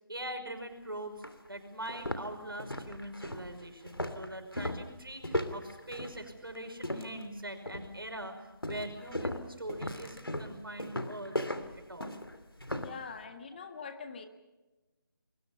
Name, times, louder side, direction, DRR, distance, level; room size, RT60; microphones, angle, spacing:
voice 1, 0.1-11.3 11.8-12.2 13.5-13.6, right 1 dB, 80° right, 5 dB, 5.7 m, -42 dB
sound 1, 0.6-0.7 1.2-1.4 1.8-7.3 7.7-8.1 8.6-13.0, left 1 dB, 85° left, 2.8 m, -37 dB
voice 2, 12.7-14.3, left 5 dB, 25° left, 7 dB, 1.6 m, -43 dB
28.5 x 22.0 x 5.6 m, 1.1 s
figure-of-eight pair, 155°, 12 cm